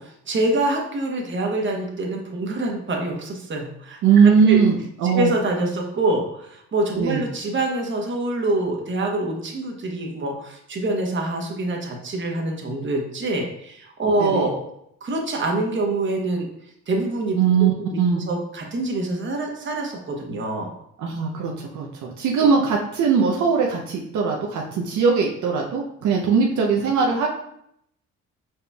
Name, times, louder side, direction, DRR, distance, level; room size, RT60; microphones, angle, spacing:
voice 1, 0.3-4.6 5.1-14.6 15.0-16.5 16.9-17.4 17.8-20.7, right 2 dB, 40° right, 1 dB, 1.1 m, -25 dB
voice 2, 4.0-5.3 7.0-7.2 14.2-14.5 17.4-18.2 21.0-27.3, right 6 dB, 70° right, -1 dB, 0.7 m, -20 dB
4.9 x 4.3 x 2.3 m, 0.74 s
cardioid pair, 90°, 30 cm